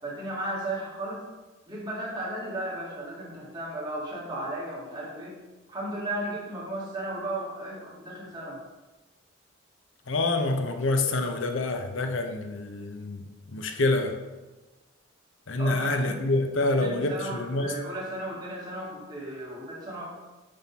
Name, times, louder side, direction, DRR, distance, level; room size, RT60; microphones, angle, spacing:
voice 1, 0.0-1.2 1.7-5.4 5.7-8.6 15.6-16.2 16.6-20.0, right 1 dB, 20° right, -6 dB, 2.1 m, -35 dB
voice 2, 10.1-13.2 13.5-14.2 15.5-17.8, left 2 dB, 70° left, 5 dB, 0.8 m, -27 dB
10.0 x 3.8 x 4.1 m, 1.2 s
head